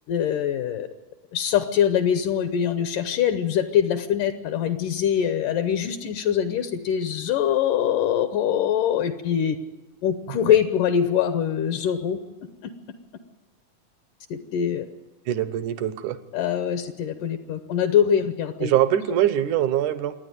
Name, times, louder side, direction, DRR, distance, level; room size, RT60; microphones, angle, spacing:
voice 1, 0.1-0.9 1.3-9.6 10.0-12.2 12.6-12.7 14.3-14.9 16.3-18.7, left 9 dB, 70° left, 9 dB, 2.3 m, -23 dB
voice 2, 15.3-16.2 18.6-20.2, right 11 dB, 70° right, 13 dB, 2.1 m, -23 dB
27.0 x 9.8 x 9.7 m, 1.2 s
omnidirectional pair, 4.2 m